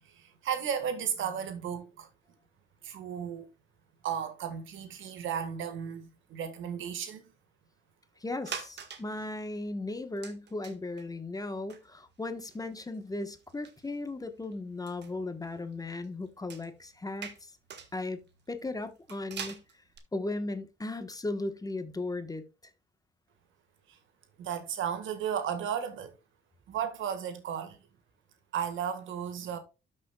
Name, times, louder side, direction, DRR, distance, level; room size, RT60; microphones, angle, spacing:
voice 1, 0.1-2.1 2.8-3.5 4.0-7.3 23.9-24.0 24.4-26.1 26.7-27.8 28.5-29.6, right 8 dB, 80° right, 1.7 m, -34 dB
voice 2, 8.2-17.5 17.9-18.2 18.5-19.6 20.1-22.7, left 2 dB, 20° left, 1.2 m, -36 dB
sound 1, 8.4-9.2 9.5-9.6 10.2-11.0 11.4-11.5 11.7-14.5 14.9-20.0, right 7 dB, 60° right, 1.6 m, -45 dB
12.5 x 6.5 x 2.3 m
cardioid pair, 90°, 20 cm